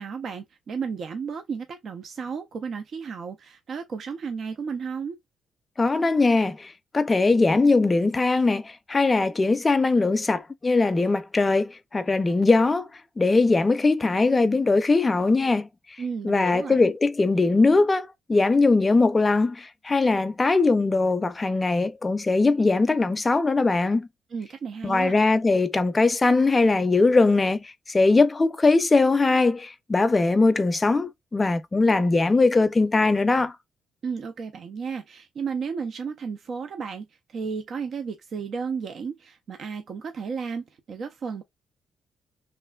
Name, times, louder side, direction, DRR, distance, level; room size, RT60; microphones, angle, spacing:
voice 1, 0.0-5.2 16.0-16.8 24.3-25.2 34.0-41.4, right 5 dB, 60° right, 0.5 m, -33 dB
voice 2, 5.8-6.7 6.9-12.9 13.2-15.7 16.2-24.1 24.8-33.5, left 3 dB, 25° left, 0.5 m, -21 dB
3.2 x 2.4 x 2.2 m
cardioid pair, 90°, 0 cm